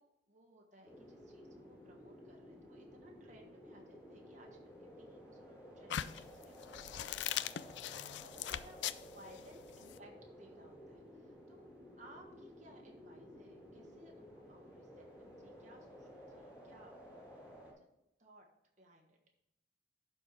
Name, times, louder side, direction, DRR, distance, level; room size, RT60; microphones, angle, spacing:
voice 1, 0.0-7.1 7.4-10.1 10.4-11.7 12.0-17.2 17.5-17.9 18.2-18.5 18.8-19.2, right 1 dB, 40° right, 0 dB, 1.4 m, -61 dB
sound 1, 0.8-17.7, equal, 15° left, 2.6 m, -55 dB
sound 2, 5.9-10.0, left 11 dB, 65° left, 0.3 m, -40 dB
11.5 x 4.4 x 4.6 m, 0.87 s
head